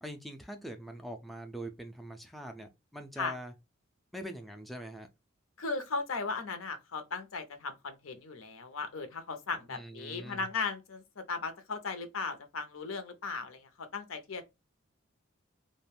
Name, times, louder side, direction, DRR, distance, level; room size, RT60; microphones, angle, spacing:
voice 1, 0.0-3.5 4.1-5.1 9.7-10.5, right 1 dB, ahead, 0.3 m, -43 dB
voice 2, 5.6-14.4, left 4 dB, 85° left, 0.6 m, -37 dB
2.4 x 2.1 x 3.3 m
head